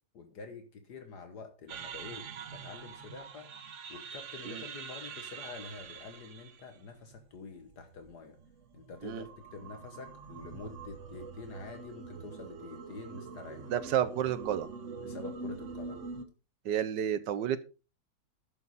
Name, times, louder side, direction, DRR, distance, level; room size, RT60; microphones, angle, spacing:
voice 1, 0.1-3.5 3.9-8.4 8.7-13.7 15.0-16.1, left 4 dB, 70° left, 7 dB, 1.8 m, -47 dB
sound 1, 1.7-16.3, right 5 dB, 50° right, 1.2 m, -45 dB
voice 2, 13.7-14.7 16.6-17.6, right 10 dB, 85° right, 13 dB, 1.5 m, -31 dB
11.5 x 7.8 x 4.1 m, 0.33 s
omnidirectional pair, 1.8 m